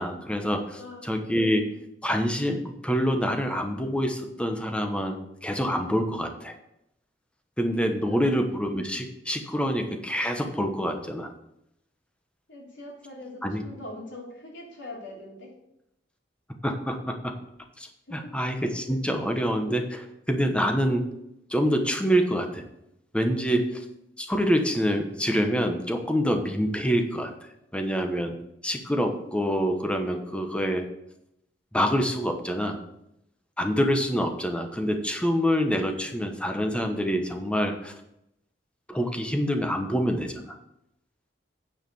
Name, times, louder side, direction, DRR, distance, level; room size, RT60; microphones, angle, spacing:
voice 1, 0.0-1.6 2.0-5.1 5.4-6.5 7.6-11.3 13.4-13.6 16.6-17.3 17.8-21.0 21.5-22.6 23.1-23.8 24.2-27.3 27.7-28.4 28.6-30.9 31.7-32.8 33.6-37.9 38.9-40.6, equal, 5° left, 5 dB, 1.1 m, -26 dB
voice 2, 0.8-1.1 8.1-8.4 12.5-15.5 18.1-18.4, left 1 dB, 75° left, -2 dB, 3.5 m, -42 dB
9.4 x 5.0 x 7.0 m, 0.81 s
head